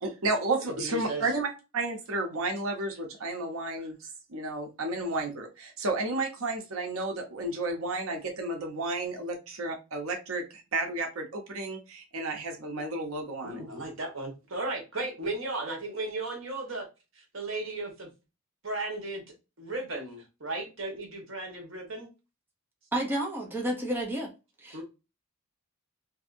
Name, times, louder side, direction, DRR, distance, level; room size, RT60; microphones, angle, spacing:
voice 1, 0.0-3.9 4.3-10.4 10.7-13.6, right 2 dB, 90° right, 0.7 m, -32 dB
voice 2, 0.8-1.2 13.4-16.9 17.1-18.1 18.6-19.2 19.6-22.1 24.7-24.8, right 2 dB, 65° right, 1.1 m, -35 dB
voice 3, 22.9-24.3 24.6-24.8, right 1 dB, 10° right, 0.6 m, -31 dB
2.7 x 2.6 x 2.5 m
head